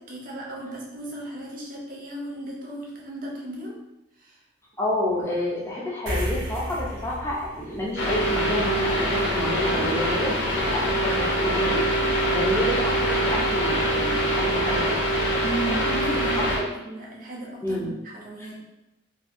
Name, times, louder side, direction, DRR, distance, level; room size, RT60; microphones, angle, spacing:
voice 1, 0.1-3.7 4.2-4.4 10.3-10.4 15.4-16.5 16.8-18.6, right 1 dB, 45° right, -3 dB, 0.5 m, -35 dB
voice 2, 4.8-11.9 12.3-15.0 16.6-16.7 17.6-17.9 18.4-18.5, left 1 dB, 15° left, -5 dB, 0.4 m, -29 dB
sound 1, 6.1-12.8, right 1 dB, 75° right, 0.7 m, -37 dB
sound 2, 8.0-16.6, right 1 dB, 70° left, 0.6 m, -24 dB
2.6 x 2.4 x 2.4 m, 0.95 s
head